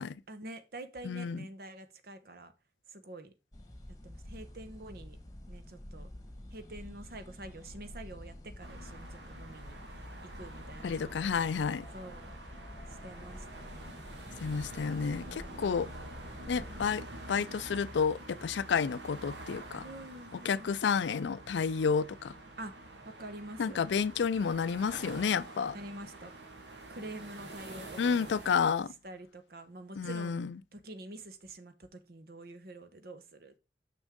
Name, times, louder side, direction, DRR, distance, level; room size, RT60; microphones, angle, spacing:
voice 1, 0.3-2.5 2.9-3.3 4.0-5.2 5.5-6.1 6.5-11.3 11.9-12.3 12.9-14.4 15.2-15.9 19.8-20.8 22.6-22.7 23.0-23.8 25.7-26.3 26.9-28.3 29.0-30.4 30.7-33.6, right 1 dB, 55° right, 0.9 m, -47 dB
voice 2, 1.0-1.5 10.8-11.8 14.4-15.9 16.5-19.8 20.4-22.3 23.6-25.7 28.0-28.9 30.0-30.6, left 6 dB, 85° left, 0.4 m, -30 dB
sound 1, 3.5-16.9, left 1 dB, 20° left, 1.3 m, -48 dB
sound 2, 8.6-28.5, right 1 dB, 85° right, 1.5 m, -48 dB
6.3 x 6.1 x 3.6 m
head